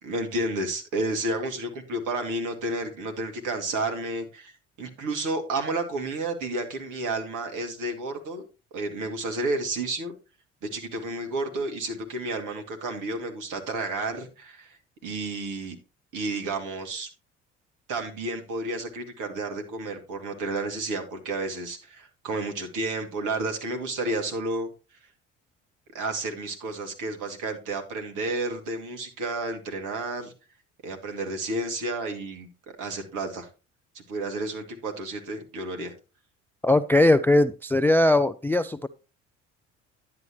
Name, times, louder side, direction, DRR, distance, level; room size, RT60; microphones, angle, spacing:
voice 1, 0.0-4.5 4.8-8.5 8.7-10.1 10.6-14.8 15.0-15.8 16.1-17.1 17.9-24.7 25.9-30.3 30.8-32.5 32.8-33.5 33.9-35.9, right 2 dB, 55° right, 2.4 m, -31 dB
voice 2, 36.6-38.9, left 1 dB, 5° left, 0.3 m, -20 dB
10.5 x 8.7 x 3.0 m
hypercardioid pair, 55°, 36 cm